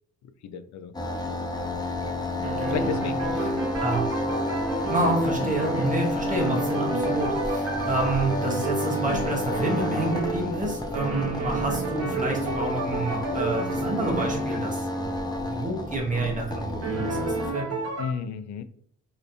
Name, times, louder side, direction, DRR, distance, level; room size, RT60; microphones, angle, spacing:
voice 1, 0.2-0.9 2.7-3.5 18.0-18.6, left 6 dB, 65° left, 11 dB, 0.5 m, -33 dB
sound 1, 0.9-17.5, left 2 dB, 15° left, 0.5 m, -30 dB
sound 2, 1.4-2.1 2.4-10.4 10.9-14.6 16.1-16.4 16.8-18.1, right 3 dB, 55° right, 0.9 m, -30 dB
voice 2, 2.4-2.8 3.8-4.1 4.9-17.7, right 2 dB, 25° right, 0 dB, 1.2 m, -29 dB
3.1 x 3.0 x 2.6 m, 0.63 s
cardioid pair, 90°, 30 cm